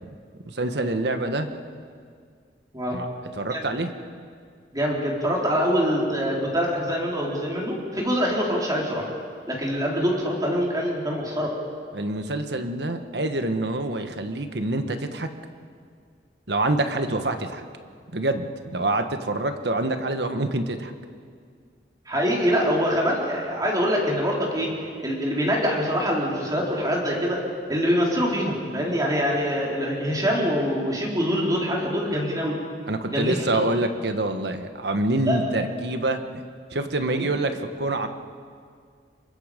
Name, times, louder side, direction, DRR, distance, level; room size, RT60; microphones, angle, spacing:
voice 1, 0.4-1.5 2.9-3.1 3.3-3.9 11.9-15.3 16.5-17.6 18.1-20.9 32.9-36.4 36.7-38.1, right 2 dB, 65° right, 7 dB, 1.5 m, -26 dB
voice 2, 4.7-9.1 9.5-11.5 22.1-24.7 25.0-27.4 27.7-32.6 33.1-33.5 35.3-35.5 37.2-37.3, equal, 20° right, -3 dB, 4.4 m, -24 dB
27.5 x 23.5 x 5.3 m, 2.1 s
head